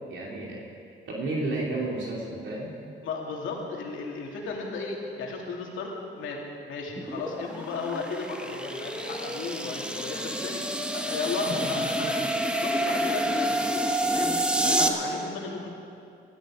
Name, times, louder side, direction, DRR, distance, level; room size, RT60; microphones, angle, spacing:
voice 1, 0.1-0.6 1.0-2.7 11.6-11.9, right 2 dB, 70° right, -3 dB, 3.0 m, -32 dB
voice 2, 3.0-10.6 10.9-13.5 14.1-14.3 14.6-15.7, left 4 dB, 80° left, -1 dB, 2.8 m, -34 dB
sound 1, 6.9-14.9, right 1 dB, 5° right, 1.2 m, -28 dB
19.5 x 13.0 x 5.0 m, 2.5 s
cardioid pair, 90°, 20 cm